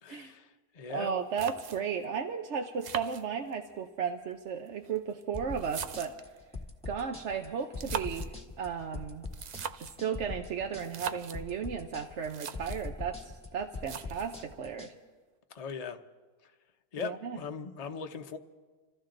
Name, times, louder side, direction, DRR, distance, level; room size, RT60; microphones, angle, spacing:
voice 1, 0.0-1.1 15.5-16.0 16.4-16.5 16.9-18.4, left 6 dB, 35° left, 6 dB, 0.8 m, -40 dB
voice 2, 0.9-6.2 6.9-8.3 8.6-9.3 9.8-14.9 17.0-17.4, right 7 dB, 60° right, 4 dB, 1.0 m, -35 dB
sound 1, 1.0-1.1 1.4-2.0 2.8-3.8 4.7-6.4 7.6-8.4 9.2-10.0 10.8-11.4 12.0-12.1 12.2-12.9 13.8-14.4, right 7 dB, 80° right, 0.3 m, -40 dB
sound 2, 5.3-14.9, left 3 dB, 5° left, 1.4 m, -42 dB
27.0 x 14.0 x 3.9 m, 1.4 s
omnidirectional pair, 1.4 m